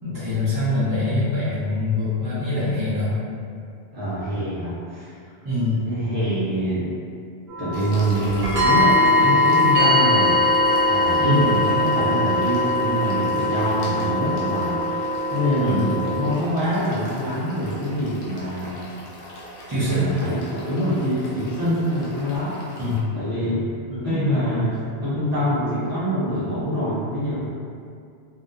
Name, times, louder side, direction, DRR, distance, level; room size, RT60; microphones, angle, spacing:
voice 1, 0.0-3.1 5.4-5.9 11.2-11.5 15.6-15.9 19.7-20.2 22.8-23.1 23.9-24.0, left 1 dB, 25° right, -12 dB, 0.5 m, -24 dB
voice 2, 3.9-5.2 5.8-6.9 7.6-10.4 10.9-14.8 15.3-18.9 19.7-22.6 23.1-23.7 24.0-27.4, equal, 40° right, -12 dB, 1.0 m, -25 dB
sound 1, 7.5-16.3, left 2 dB, 80° right, 1.1 m, -21 dB
sound 2, 7.7-23.0, left 1 dB, 70° left, 0.8 m, -39 dB
2.8 x 2.0 x 2.4 m, 2.3 s
omnidirectional pair, 1.0 m